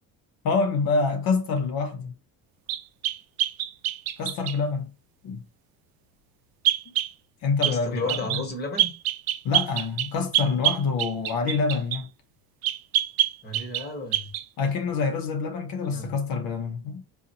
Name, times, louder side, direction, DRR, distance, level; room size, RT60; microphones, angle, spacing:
voice 1, 0.4-2.2 4.2-4.9 5.2-5.4 6.9-7.0 7.4-8.4 9.4-12.1 14.6-17.0, left 4 dB, 70° left, 0.7 m, -26 dB
sound 1, 2.7-4.6 6.6-7.1 7.6-7.8 8.1-8.5 8.8-12.0 12.6-13.9 14.1-14.4, right 13 dB, 75° right, 0.5 m, -26 dB
voice 2, 7.6-8.9 13.4-14.3 15.8-16.1, left 2 dB, 25° left, 1.0 m, -33 dB
3.9 x 2.1 x 2.7 m
cardioid pair, 125°, 36 cm